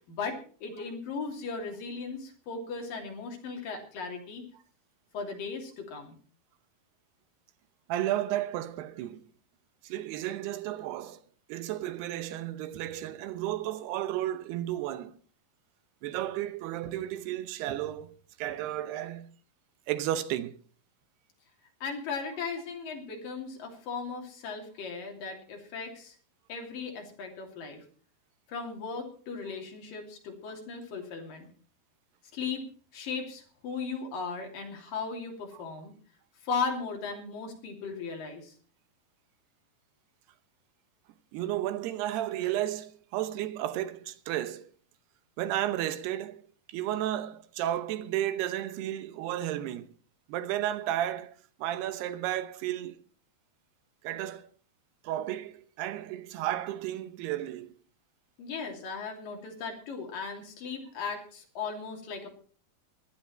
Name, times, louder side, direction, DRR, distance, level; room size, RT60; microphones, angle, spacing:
voice 1, 0.1-4.4 5.1-6.2 21.8-26.2 26.5-27.8 28.5-31.5 32.3-32.6 32.9-35.9 36.4-38.5 58.4-62.3, left 5 dB, 60° left, 4.4 m, -37 dB
voice 2, 7.9-9.2 9.8-11.2 11.5-15.2 16.0-19.3 19.9-20.6 35.5-35.6 41.3-44.7 45.4-46.4 46.7-49.9 50.3-51.3 51.6-53.0 54.0-54.5 55.0-57.8, right 13 dB, 85° right, 3.0 m, -33 dB
16.5 x 12.0 x 4.3 m
omnidirectional pair, 4.6 m